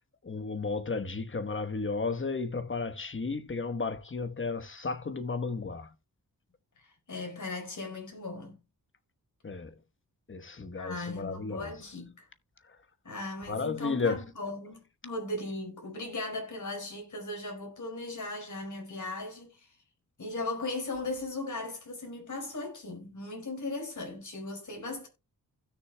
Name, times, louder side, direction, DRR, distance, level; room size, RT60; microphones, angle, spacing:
voice 1, 0.2-5.9 9.4-9.7 10.3-11.7 13.5-14.2, left 4 dB, 35° left, 1.2 m, -33 dB
voice 2, 6.8-8.6 10.8-12.3 13.0-19.7 20.2-25.1, left 2 dB, 55° left, 4.8 m, -38 dB
16.0 x 6.6 x 2.2 m
wide cardioid pair, 90°, 36 cm